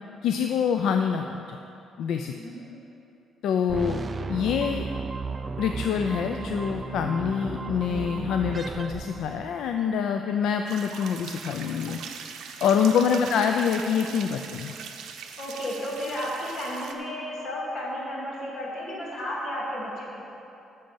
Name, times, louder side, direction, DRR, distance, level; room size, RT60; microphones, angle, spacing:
voice 1, 0.2-1.6 2.0-2.3 3.4-4.0 4.3-4.9 5.6-12.0 12.6-14.7, left 7 dB, 70° left, 5 dB, 0.4 m, -25 dB
voice 2, 2.2-2.6 12.6-12.9 13.7-14.0 15.4-20.3, equal, 45° left, -5 dB, 2.5 m, -33 dB
sound 1, 3.7-9.8, right 4 dB, 25° right, 0.3 m, -34 dB
sound 2, 10.7-16.9, right 6 dB, 75° right, 0.8 m, -41 dB
9.1 x 6.6 x 7.1 m, 2.7 s
cardioid pair, 165°, 0 cm